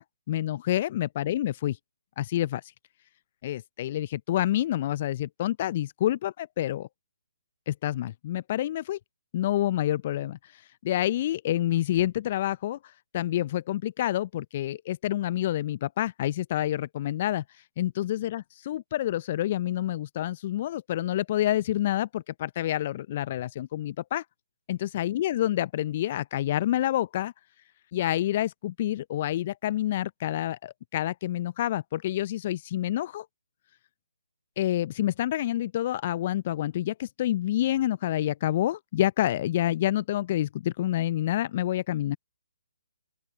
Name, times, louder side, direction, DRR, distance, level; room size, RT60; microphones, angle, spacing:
voice 1, 0.0-1.8 2.2-2.6 3.4-6.9 7.7-9.0 9.3-12.8 13.1-17.4 17.8-24.2 24.7-27.3 27.9-33.3 34.6-42.2, left 13 dB, 40° left, 0.6 m, -28 dB
open air
figure-of-eight pair, 135°, 0 cm